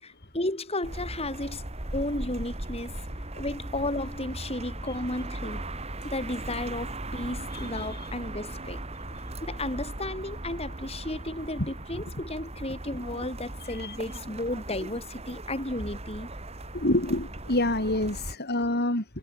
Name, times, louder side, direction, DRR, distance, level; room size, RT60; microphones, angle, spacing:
voice 1, 0.0-2.9 3.3-5.7 6.0-8.9 9.4-16.3, left 1 dB, 25° left, 4.8 m, -33 dB
sound 1, 0.8-18.4, right 1 dB, 30° right, 2.5 m, -38 dB
voice 2, 7.5-7.9 11.6-11.7 13.8-14.0 16.7-19.0, left 1 dB, 45° left, 4.6 m, -27 dB
head